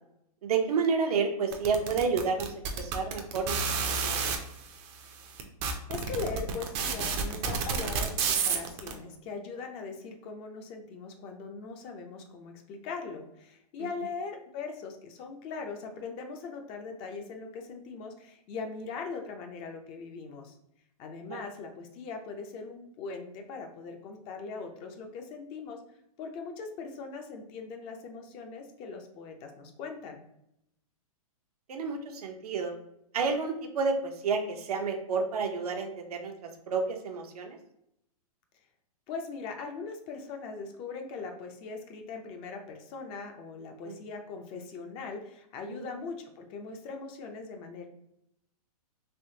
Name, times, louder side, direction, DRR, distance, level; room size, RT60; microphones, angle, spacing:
voice 1, 0.4-4.3 13.8-13.9 21.3-21.4 31.7-32.7 33.1-37.6 43.8-44.0 45.7-45.9, right 5 dB, 80° right, 3 dB, 0.7 m, -30 dB
sound 1, 1.5-4.4 5.1-5.2 5.4-8.9, right 6 dB, 30° right, 0.5 m, -29 dB
voice 2, 5.9-20.5 21.0-25.8 26.2-30.2 39.1-47.9, left 4 dB, 30° left, 4 dB, 0.5 m, -40 dB
3.4 x 3.0 x 2.7 m, 0.79 s
hypercardioid pair, 135°, 19 cm